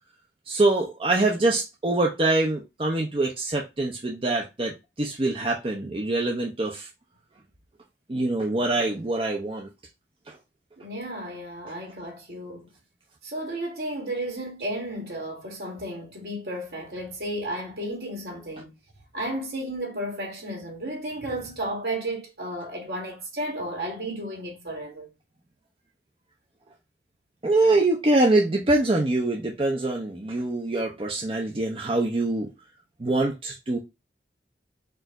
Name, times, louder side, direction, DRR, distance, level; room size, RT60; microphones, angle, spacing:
voice 1, 0.5-6.9 8.1-9.7 10.3-10.4 27.4-32.5 33.0-33.8, right 2 dB, 30° right, 0.7 m, -24 dB
voice 2, 10.8-12.7 13.2-18.7 19.1-25.1, right 1 dB, 60° right, 2.1 m, -33 dB
4.5 x 2.6 x 4.4 m
head